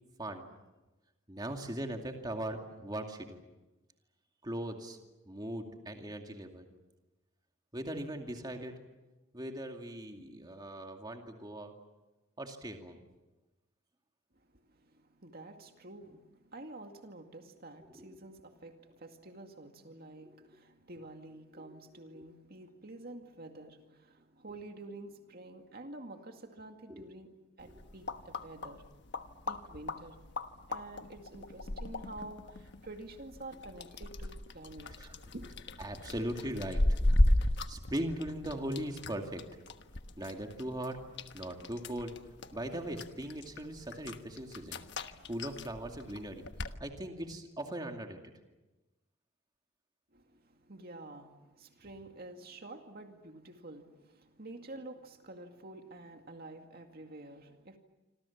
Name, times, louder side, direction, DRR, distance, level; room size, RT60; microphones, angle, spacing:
voice 1, 1.3-3.4 4.4-5.0 5.3-6.7 7.7-8.7 9.3-11.7 12.4-13.0 17.9-18.3 20.2-20.3 21.6-21.8 22.1-22.3 26.9-27.1 27.7-27.8 35.0-35.2 35.8-36.8 37.7-39.4 40.2-41.0 41.3-42.1 42.5-46.4 46.8-48.3, right 1 dB, 20° right, 3 dB, 2.4 m, -39 dB
voice 2, 14.3-27.3 27.6-28.8 29.5-30.2 30.7-34.9 35.2-35.6 50.1-57.8, right 2 dB, 50° right, 4 dB, 2.2 m, -49 dB
sound 1, 27.6-46.8, left 1 dB, 60° left, 1.3 m, -36 dB
27.0 x 26.5 x 7.3 m, 1.1 s
head